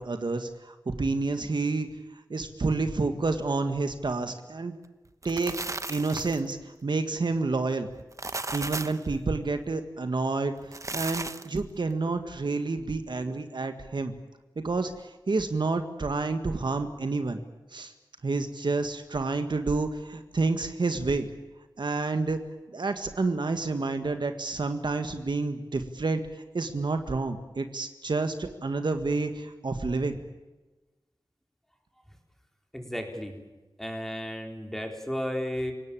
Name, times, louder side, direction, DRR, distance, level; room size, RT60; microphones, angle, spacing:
voice 1, 0.0-1.9 2.3-4.8 5.2-7.9 8.5-14.1 14.5-17.4 17.7-17.9 18.2-21.3 21.8-22.4 22.7-30.2, right 3 dB, 65° right, 7 dB, 1.7 m, -29 dB
sound 1, 5.1-6.5 8.0-9.1 10.6-11.6, right 2 dB, 40° right, 1.1 m, -35 dB
voice 2, 32.7-33.4 33.8-35.7, equal, 5° left, 3 dB, 4.3 m, -33 dB
29.0 x 18.0 x 8.9 m, 1.1 s
wide cardioid pair, 70°, 8 cm